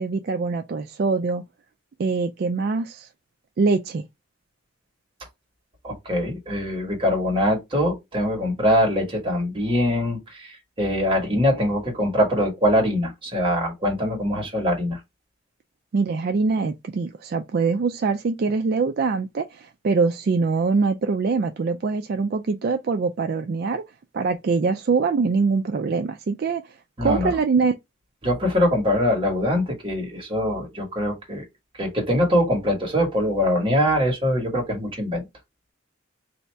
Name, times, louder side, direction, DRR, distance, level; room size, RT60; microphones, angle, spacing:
voice 1, 0.0-1.4 2.0-3.1 3.6-4.0 15.9-23.8 24.1-27.7, right 4 dB, 50° right, 0.3 m, -23 dB
voice 2, 5.8-15.0 27.0-27.3 28.2-31.4 31.8-35.3, equal, 25° right, 1.4 m, -23 dB
3.1 x 2.7 x 4.5 m
head